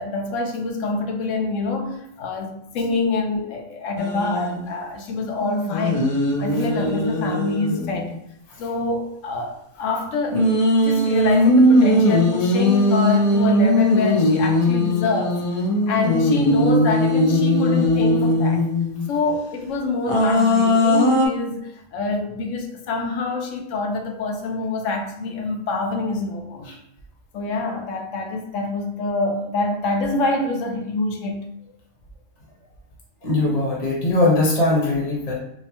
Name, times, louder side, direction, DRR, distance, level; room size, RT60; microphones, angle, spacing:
voice 1, 0.0-8.1 8.6-15.4 15.9-18.6 19.1-26.7 27.3-31.5, left 3 dB, 80° left, 4 dB, 0.9 m, -26 dB
sound 1, 4.0-4.6 5.4-8.1 10.3-19.1 20.1-21.3, left 1 dB, 55° left, 0.3 m, -19 dB
voice 2, 33.2-35.3, left 2 dB, 40° left, -4 dB, 0.9 m, -20 dB
4.5 x 2.1 x 2.9 m, 0.77 s
omnidirectional pair, 1.3 m